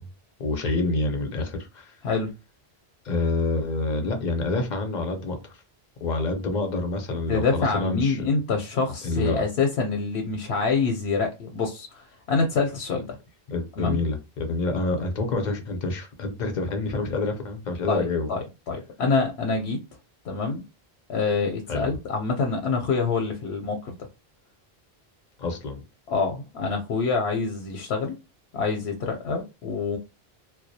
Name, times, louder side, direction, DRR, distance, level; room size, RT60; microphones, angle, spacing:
voice 1, 0.4-1.9 3.0-5.5 6.0-8.2 9.0-9.4 13.5-18.3 21.7-21.9 25.4-25.8, left 2 dB, 55° left, 0.6 m, -27 dB
voice 2, 7.3-13.1 13.8-14.0 17.9-19.8 20.2-20.6 21.1-23.9 26.1-28.1 28.5-30.0, left 4 dB, 85° left, 0.8 m, -26 dB
2.3 x 2.0 x 2.6 m
omnidirectional pair, 1.0 m